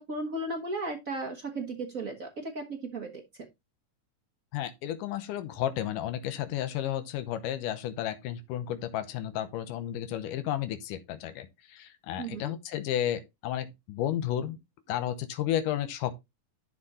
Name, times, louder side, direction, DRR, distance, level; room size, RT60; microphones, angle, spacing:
voice 1, 0.0-3.2 12.2-12.5, right 2 dB, 65° right, 0.8 m, -35 dB
voice 2, 4.5-14.6 14.9-16.1, left 11 dB, 85° left, 2.4 m, -32 dB
11.5 x 4.2 x 4.1 m
omnidirectional pair, 3.7 m